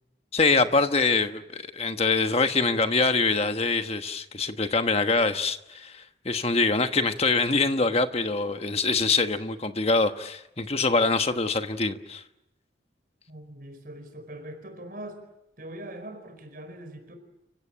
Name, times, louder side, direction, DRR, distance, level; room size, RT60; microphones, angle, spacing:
voice 1, 0.3-12.2, left 3 dB, 30° left, 8 dB, 1.3 m, -24 dB
voice 2, 13.3-15.2 15.6-17.2, right 1 dB, 50° right, 7 dB, 4.8 m, -41 dB
29.5 x 16.0 x 9.1 m, 0.92 s
head